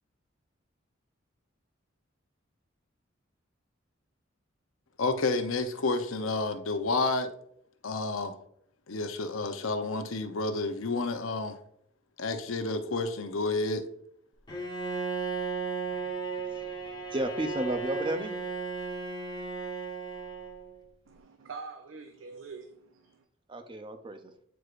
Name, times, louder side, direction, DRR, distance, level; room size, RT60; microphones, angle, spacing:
voice 1, 5.0-7.3 7.8-8.3 8.9-11.6 12.2-13.8, left 3 dB, 90° left, 0.7 m, -30 dB
Bowed string instrument, 14.5-20.8, right 4 dB, 20° left, 1.4 m, -35 dB
voice 2, 16.9-18.4 23.5-24.2, right 1 dB, 25° right, 0.6 m, -33 dB
voice 3, 21.1-23.2, right 4 dB, 75° right, 0.5 m, -45 dB
8.0 x 4.7 x 2.5 m
head